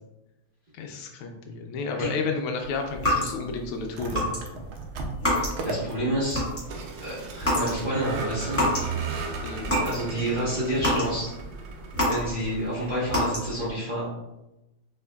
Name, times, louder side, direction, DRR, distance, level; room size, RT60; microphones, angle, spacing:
voice 1, 0.7-4.4 9.4-9.7, left 4 dB, 80° left, 3 dB, 1.4 m, -31 dB
sound 1, 2.9-3.7 4.1-4.4 4.7-5.8 6.1-6.8 7.4-7.8 8.1-8.9 9.3-10.0 10.4-12.6 13.1-13.7, left 1 dB, 10° left, 1.1 m, -26 dB
Vehicle, 3.8-13.2, right 4 dB, 75° right, 1.4 m, -36 dB
voice 2, 5.3-6.4 7.0-8.6 9.8-11.3 12.0-14.1, right 1 dB, 35° right, -11 dB, 1.0 m, -29 dB
4.4 x 3.3 x 2.2 m, 0.94 s
omnidirectional pair, 2.4 m